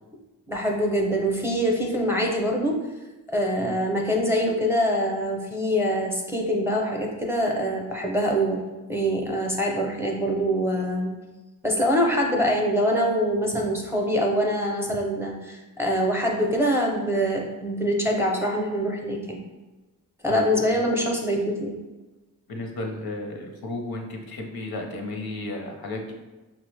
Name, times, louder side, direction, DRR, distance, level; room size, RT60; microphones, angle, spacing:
voice 1, 0.5-2.8 3.3-8.6 8.9-11.1 11.6-19.4 20.2-21.7, equal, 5° right, -1 dB, 0.5 m, -24 dB
voice 2, 20.3-20.8 22.5-26.1, left 2 dB, 80° left, 2 dB, 0.7 m, -34 dB
5.7 x 2.0 x 3.2 m, 1.1 s
wide cardioid pair, 125°, 36 cm